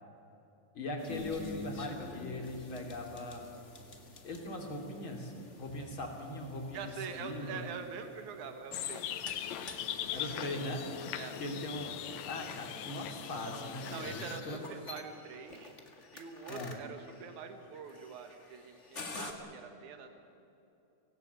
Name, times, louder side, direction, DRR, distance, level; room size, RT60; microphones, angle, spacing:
voice 1, 0.8-3.4 4.2-5.3 5.6-6.9 7.2-7.6 9.9-12.0 12.2-14.7 16.5-16.7, left 1 dB, 45° left, 2 dB, 3.6 m, -40 dB
sound 1, 1.0-19.3, left 3 dB, 30° left, 1.8 m, -49 dB
voice 2, 6.7-9.1 11.2-11.4 13.9-15.7 16.1-20.1, right 6 dB, 85° right, 7 dB, 3.0 m, -44 dB
sound 2, 8.7-14.4, left 10 dB, 70° left, 2.1 m, -40 dB
25.0 x 17.5 x 8.2 m, 2.9 s
omnidirectional pair, 3.3 m